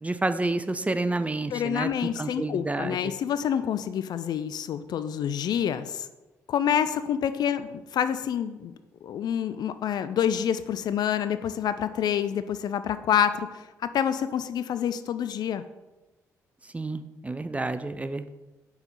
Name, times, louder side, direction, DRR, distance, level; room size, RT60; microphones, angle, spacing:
voice 1, 0.0-1.9 2.2-3.1 16.7-18.3, right 2 dB, 15° right, 11 dB, 0.4 m, -29 dB
voice 2, 1.5-6.1 6.5-8.7 9.0-15.6, left 9 dB, 55° left, 12 dB, 0.3 m, -27 dB
5.4 x 4.4 x 4.0 m, 1.1 s
hypercardioid pair, 40°, 8 cm